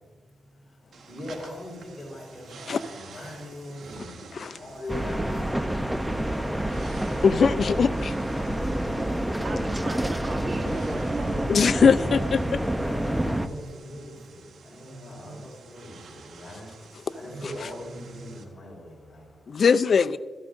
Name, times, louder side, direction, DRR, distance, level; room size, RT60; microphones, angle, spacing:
voice 1, 0.3-7.2 8.3-9.5 9.7-10.4 11.7-12.3 12.8-19.6, left 1 dB, 35° left, -3 dB, 4.4 m, -42 dB
sound 1, 0.9-18.4, right 4 dB, 80° right, 1.5 m, -48 dB
sound 2, 4.9-13.5, right 1 dB, 5° right, 0.7 m, -28 dB
voice 2, 7.2-8.1 11.5-12.6 19.5-20.2, left 6 dB, 60° left, 12 dB, 0.5 m, -21 dB
voice 3, 9.4-11.5 11.8-12.3 13.3-13.4, right 3 dB, 60° right, 2 dB, 2.2 m, -37 dB
17.0 x 14.0 x 2.6 m, 1.3 s
cardioid pair, 70°, 0 cm